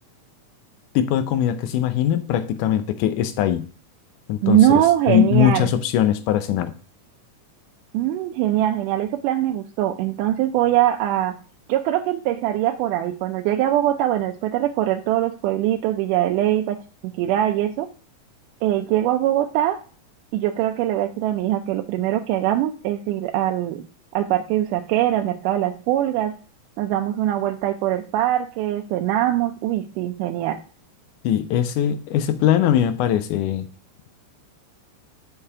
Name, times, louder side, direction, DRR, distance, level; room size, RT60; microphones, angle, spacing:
voice 1, 1.0-3.7 4.3-4.6 5.1-6.7 31.2-33.7, left 10 dB, 85° left, 11 dB, 2.2 m, -21 dB
voice 2, 4.4-5.7 7.9-11.4 11.7-17.9 18.6-19.8 20.3-23.8 24.1-26.3 26.8-30.6, right 12 dB, 90° right, 4 dB, 2.1 m, -22 dB
7.0 x 5.4 x 4.8 m, 0.39 s
omnidirectional pair, 3.6 m